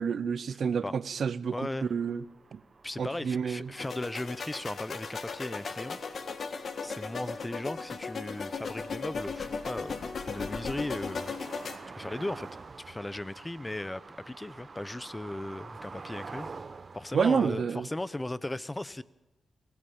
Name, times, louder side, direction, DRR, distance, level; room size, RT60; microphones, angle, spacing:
voice 1, 0.0-2.2 2.5-2.6 3.0-3.7 17.1-17.9, right 6 dB, 70° right, 0.7 m, -29 dB
voice 2, 1.5-1.9 2.8-6.0 6.8-11.3 11.9-12.5 12.9-16.5 16.9-19.0, left 1 dB, 15° left, 0.9 m, -37 dB
sound 1, 1.8-17.6, right 4 dB, 45° right, 1.1 m, -49 dB
sound 2, 3.8-11.8, left 5 dB, 65° left, 1.7 m, -37 dB
23.0 x 16.5 x 7.2 m
cardioid pair, 60°, 0 cm